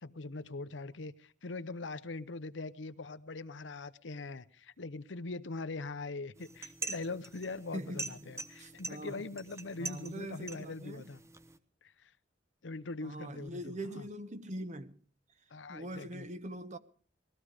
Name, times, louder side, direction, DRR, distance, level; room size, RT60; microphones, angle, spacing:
voice 1, 0.0-11.2 11.8-12.1 12.6-14.1 15.5-16.3, left 3 dB, 75° left, 0.8 m, -42 dB
sound 1, 6.4-11.6, right 3 dB, 15° right, 1.0 m, -44 dB
voice 2, 7.7-8.3 8.6-9.3 9.8-11.1 13.0-15.0 15.7-16.8, right 1 dB, 40° right, 1.1 m, -43 dB
19.5 x 14.5 x 5.0 m
head